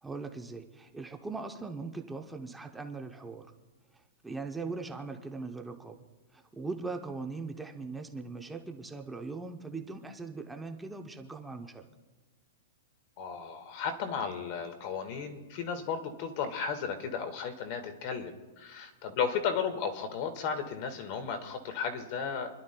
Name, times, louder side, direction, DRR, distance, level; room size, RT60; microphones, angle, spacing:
voice 1, 0.0-3.5 3.9-6.0 6.3-11.8, right 3 dB, 5° right, 4 dB, 0.7 m, -40 dB
voice 2, 13.2-22.6, left 6 dB, 35° left, 7 dB, 1.6 m, -34 dB
29.0 x 11.5 x 2.2 m, 1.3 s
hypercardioid pair, 170°, 0 cm